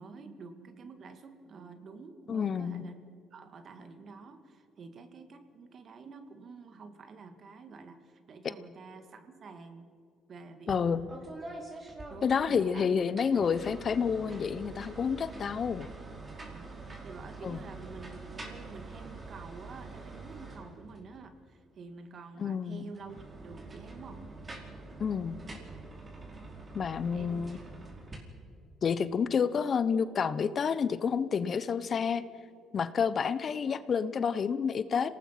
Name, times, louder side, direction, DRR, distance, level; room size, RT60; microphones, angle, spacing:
voice 1, 0.0-3.0 3.3-9.9 10.3-11.1 12.1-13.0 13.3-13.6 16.3-24.3 27.1-27.5, right 4 dB, 55° right, 8 dB, 2.3 m, -48 dB
voice 2, 2.3-2.8 10.7-11.0 12.2-15.9 17.4-17.6 22.4-22.8 25.0-25.4 26.7-27.6 28.8-32.2 32.7-35.1, left 6 dB, 50° left, 14 dB, 0.9 m, -29 dB
sound 1, 10.7-10.8 11.1-12.7 13.1-21.1 22.9-28.1, right 3 dB, 30° right, 5.2 m, -45 dB
26.5 x 18.5 x 6.0 m, 2.3 s
supercardioid pair, 65°, 0 cm